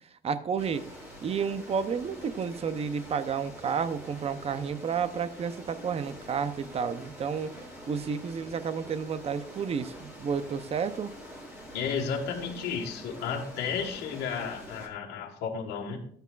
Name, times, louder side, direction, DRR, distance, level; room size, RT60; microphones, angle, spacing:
voice 1, 0.2-0.9 1.2-7.5 7.9-11.1, right 6 dB, 35° right, 13 dB, 0.7 m, -31 dB
sound 1, 0.6-14.9, equal, 15° right, 3.6 m, -46 dB
voice 2, 11.7-16.0, left 6 dB, 80° left, 0 dB, 1.7 m, -33 dB
13.0 x 8.1 x 2.5 m, 0.65 s
cardioid pair, 110°, 17 cm